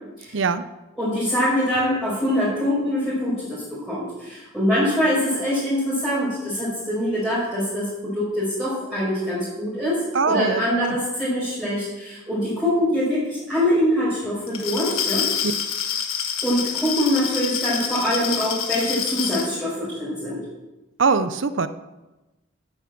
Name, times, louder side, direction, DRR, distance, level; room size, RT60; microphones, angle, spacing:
voice 1, 1.0-15.3 16.4-20.4, equal, 5° right, -11 dB, 5.2 m, -24 dB
voice 2, 10.1-11.0 15.4-15.5 21.0-21.7, right 4 dB, 65° right, 12 dB, 0.7 m, -22 dB
Glass, 14.5-19.5, left 7 dB, 85° left, 1.6 m, -27 dB
10.5 x 9.3 x 7.6 m, 1.1 s
head